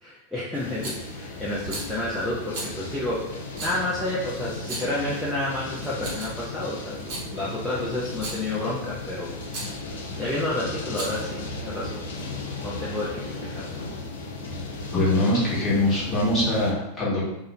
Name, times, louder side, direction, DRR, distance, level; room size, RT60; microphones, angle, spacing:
voice 1, 0.0-9.3 10.1-13.7, left 1 dB, 5° left, -9 dB, 0.5 m, -30 dB
sound 1, 0.5-16.7, left 3 dB, 60° left, 0.4 m, -36 dB
Rattle, 0.8-1.1 1.6-1.9 2.5-2.7 3.5-3.8 4.6-5.0 5.8-6.5 6.9-7.3 8.1-8.5 9.5-9.7 10.8-11.3, right 2 dB, 45° right, 0.8 m, -35 dB
voice 2, 14.9-17.3, left 1 dB, 20° left, -7 dB, 1.0 m, -23 dB
2.3 x 2.0 x 3.0 m, 0.86 s
figure-of-eight pair, 90°, 0 cm